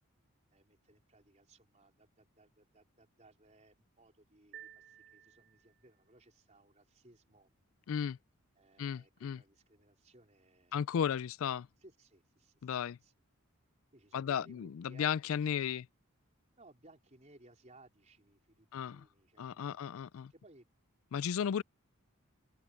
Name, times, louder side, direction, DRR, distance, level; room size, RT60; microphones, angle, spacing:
voice 1, 0.5-7.5 8.6-10.8 11.8-12.7 13.0-13.1 13.9-15.8 16.6-20.7, right 2 dB, 30° right, 4.1 m, -63 dB
sound 1, 4.5-6.0, right 10 dB, 50° right, 7.4 m, -55 dB
voice 2, 7.9-8.2 8.8-9.4 10.7-11.7 12.6-13.0 14.1-15.8 18.7-19.0 19.4-20.3 21.1-21.6, left 8 dB, 70° left, 0.3 m, -34 dB
head